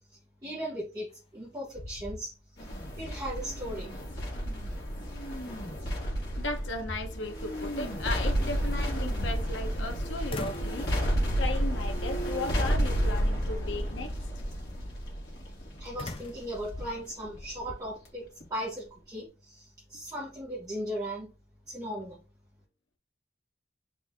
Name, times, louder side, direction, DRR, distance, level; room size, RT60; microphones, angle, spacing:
voice 1, 0.1-2.3 3.0-3.9 15.8-18.2 18.5-21.3 21.7-22.2, equal, 20° right, 1.0 m, -37 dB
sound 1, 1.1-1.5 1.7-2.8 3.1-3.2 5.9-6.0 6.6-7.5 8.8-9.9 10.3-10.8 11.4-11.7 12.5-13.0 16.0-17.8, left 2 dB, 30° left, 0.4 m, -42 dB
sound 2, 2.6-18.1 18.4-18.5, equal, 55° left, 1.6 m, -31 dB
voice 2, 6.4-10.9 11.4-14.1, left 2 dB, 80° left, 0.9 m, -36 dB
4.1 x 2.6 x 3.5 m
head